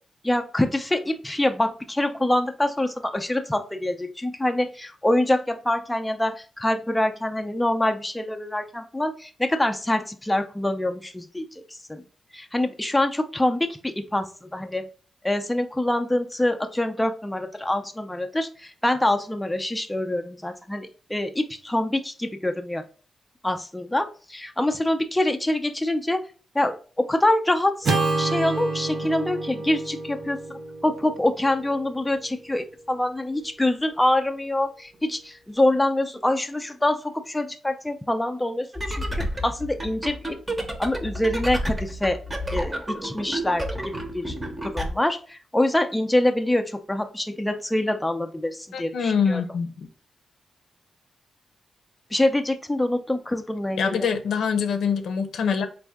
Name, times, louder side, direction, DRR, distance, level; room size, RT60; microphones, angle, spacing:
voice 1, 0.2-11.4 11.9-12.0 12.3-14.9 15.2-22.8 23.4-26.2 26.5-27.9 28.2-40.4 40.8-42.2 42.5-42.7 43.0-44.3 44.6-49.4 52.1-54.1, left 1 dB, 10° left, 0.4 m, -25 dB
Acoustic guitar / Strum, 27.8-32.3, right 3 dB, 60° right, 0.8 m, -29 dB
sound 1, 38.7-44.9, equal, 15° right, 0.7 m, -31 dB
voice 2, 48.7-49.9 53.8-55.7, left 6 dB, 90° left, 0.6 m, -24 dB
4.2 x 2.6 x 3.5 m
wide cardioid pair, 115°, 0 cm